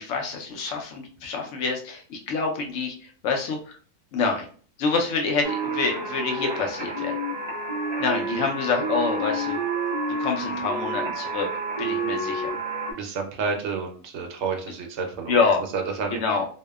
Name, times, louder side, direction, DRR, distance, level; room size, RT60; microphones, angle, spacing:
voice 1, 0.0-2.9 3.2-3.6 4.1-4.5 4.8-7.2 8.0-9.6 10.2-11.5 11.8-12.5 15.3-15.6 16.1-16.5, left 4 dB, 70° left, 2 dB, 0.9 m, -26 dB
sound 1, 5.4-12.9, right 2 dB, 40° right, 0.4 m, -29 dB
voice 2, 12.9-15.3 15.7-16.4, right 5 dB, 65° right, 3 dB, 0.8 m, -30 dB
2.7 x 2.1 x 2.2 m, 0.43 s
omnidirectional pair, 1.4 m